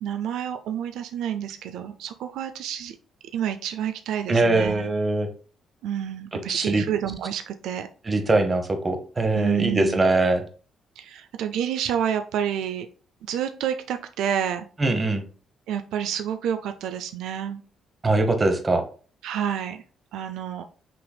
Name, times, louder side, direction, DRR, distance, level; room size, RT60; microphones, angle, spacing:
voice 1, 0.0-3.0 3.3-4.9 5.8-7.9 9.3-10.0 11.0-12.9 13.2-14.7 15.7-17.6 19.2-19.8 20.1-20.6, right 9 dB, 85° right, 8 dB, 0.3 m, -29 dB
voice 2, 4.3-5.3 6.3-6.8 8.1-10.4 14.8-15.2 18.0-18.8, right 2 dB, 30° right, 7 dB, 0.9 m, -22 dB
5.8 x 3.4 x 2.2 m, 0.40 s
cardioid pair, 90°, 0 cm